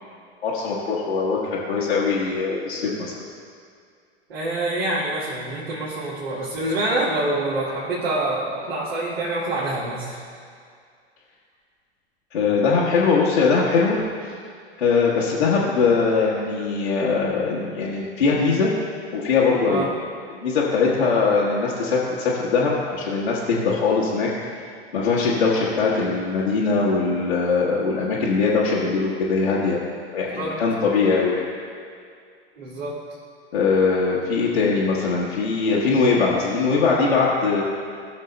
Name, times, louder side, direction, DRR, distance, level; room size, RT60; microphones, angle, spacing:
voice 1, 0.4-3.1 12.3-14.3 14.8-18.7 19.1-19.8 20.3-24.3 24.9-29.8 30.1-31.4 33.5-37.6, left 4 dB, 70° left, -7 dB, 1.3 m, -21 dB
voice 2, 4.3-10.2 19.7-19.9 30.3-30.6 32.6-33.0, right 2 dB, 65° right, -7 dB, 1.8 m, -26 dB
18.0 x 6.4 x 2.2 m, 2.2 s
figure-of-eight pair, 85°, 33 cm